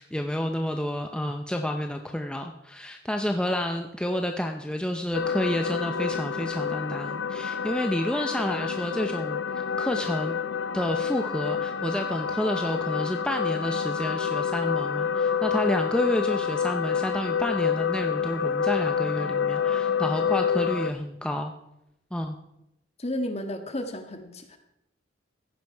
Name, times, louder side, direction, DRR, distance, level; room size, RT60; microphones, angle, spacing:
voice 1, 0.0-10.3 10.7-21.5 22.1-22.4, left 1 dB, 5° left, 4 dB, 0.7 m, -29 dB
sound 1, 5.1-20.9, left 7 dB, 90° left, 0.5 m, -28 dB
voice 2, 23.0-24.6, left 1 dB, 35° left, 6 dB, 1.6 m, -32 dB
15.0 x 10.5 x 4.6 m, 0.84 s
head